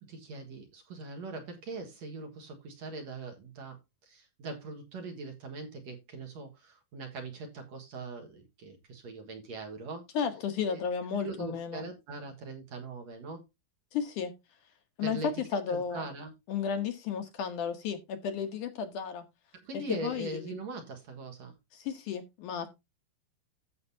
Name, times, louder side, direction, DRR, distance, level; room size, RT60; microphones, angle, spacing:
voice 1, 0.0-10.1 10.7-10.8 11.2-13.4 15.0-15.4 15.7-16.3 19.5-21.6, right 3 dB, 55° right, 2.4 m, -41 dB
voice 2, 10.1-11.9 13.9-14.3 15.0-15.2 15.5-16.0 16.5-19.3 19.9-20.6 21.7-22.7, left 7 dB, 70° left, 2.3 m, -33 dB
14.0 x 6.5 x 2.7 m
omnidirectional pair, 4.2 m